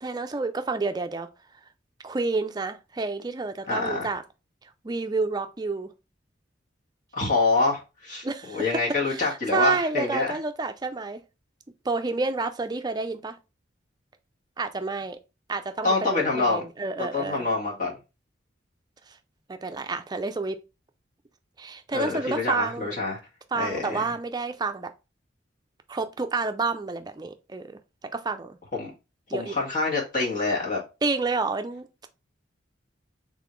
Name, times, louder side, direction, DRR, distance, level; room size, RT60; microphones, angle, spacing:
voice 1, 0.0-1.3 2.0-4.2 4.8-5.9 8.2-11.2 11.8-13.4 14.6-15.2 15.5-17.5 19.5-20.6 21.6-23.0 23.5-24.9 25.9-27.8 28.1-28.6 29.3-29.6 31.0-32.1, right 3 dB, 20° right, 0.4 m, -29 dB
voice 2, 3.7-4.1 7.1-10.3 15.8-16.6 17.0-17.9 21.9-23.2 23.5-24.1 28.7-28.9 29.3-30.8, left 3 dB, 45° left, 1.6 m, -26 dB
4.1 x 3.6 x 3.1 m
head